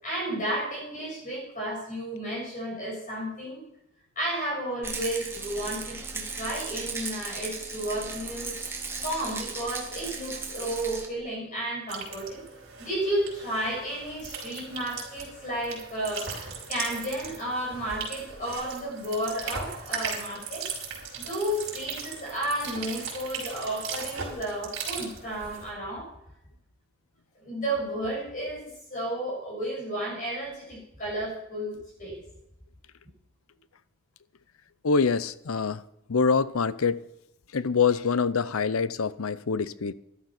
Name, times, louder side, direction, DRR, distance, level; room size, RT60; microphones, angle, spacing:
voice 1, 0.0-3.6 4.2-8.6 9.0-12.4 12.8-20.7 21.2-26.1 27.4-28.6 28.9-32.2, right 1 dB, 35° left, 7.2 m, -32 dB
Rattle, 4.8-11.1, right 4 dB, 10° right, 1.8 m, -36 dB
sound 1, 11.9-25.7, right 5 dB, 60° right, 5.1 m, -38 dB
voice 2, 34.8-35.8 36.1-37.1 37.5-39.9, left 5 dB, 70° left, 0.6 m, -25 dB
13.5 x 11.5 x 5.9 m
head